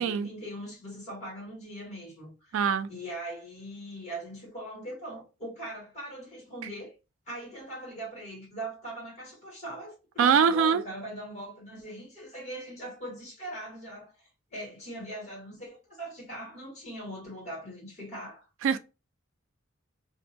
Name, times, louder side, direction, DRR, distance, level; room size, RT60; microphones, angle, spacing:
voice 1, 0.0-2.6 2.9-6.9 7.3-18.5, right 1 dB, 35° left, 1.5 m, -41 dB
voice 2, 2.5-2.9 10.2-10.8 18.6-18.8, right 7 dB, 80° right, 0.3 m, -23 dB
2.5 x 2.2 x 2.7 m
head